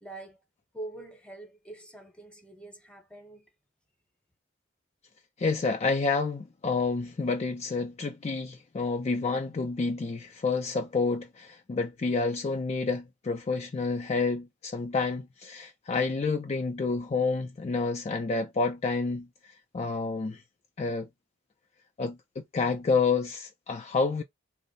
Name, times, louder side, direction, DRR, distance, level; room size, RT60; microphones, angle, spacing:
voice 1, 0.0-0.4 0.7-3.5, right 2 dB, 5° left, 0.8 m, -44 dB
voice 2, 5.4-20.4 20.8-21.1 22.0-24.2, left 4 dB, 35° left, 0.4 m, -29 dB
3.0 x 2.0 x 3.9 m
head